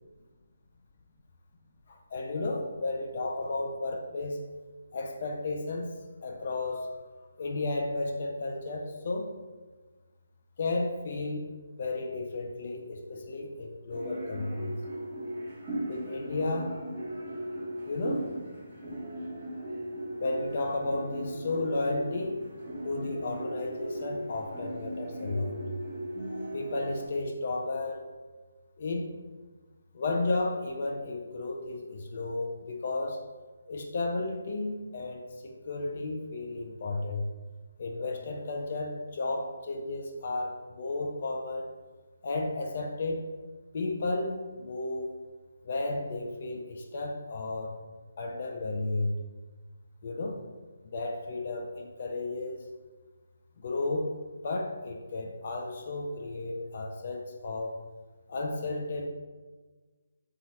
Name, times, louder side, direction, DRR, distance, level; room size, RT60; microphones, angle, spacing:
voice 1, 1.9-4.4 4.9-5.9 6.2-6.9 7.4-9.3 10.6-14.8 15.9-16.7 17.9-18.3 20.2-22.4 22.8-25.6 26.5-28.1 28.8-29.2 29.9-33.2 33.7-37.2 37.8-41.7 42.2-43.2 43.7-45.1 45.6-47.8 48.2-49.1 50.0-50.4 50.9-52.6 53.6-54.1 54.4-57.8 58.3-59.1, left 2 dB, 45° left, 2 dB, 0.3 m, -33 dB
sound 1, 13.9-27.1, right 1 dB, 35° right, 0.8 m, -38 dB
2.8 x 2.3 x 3.1 m, 1.3 s
hypercardioid pair, 165°, 0 cm